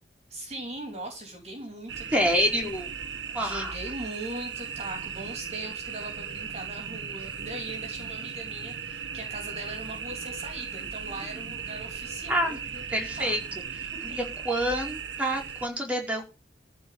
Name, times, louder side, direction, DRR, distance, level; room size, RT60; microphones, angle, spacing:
voice 1, 0.3-2.3 3.4-13.3, right 1 dB, 40° right, 3 dB, 3.1 m, -40 dB
sound 1, 1.9-15.7, right 7 dB, 85° right, 1.2 m, -37 dB
voice 2, 2.1-2.9 3.3-3.7 12.3-12.6 12.9-13.4 14.0-16.2, equal, 10° right, 1 dB, 4.6 m, -27 dB
14.5 x 4.9 x 9.2 m, 0.30 s
head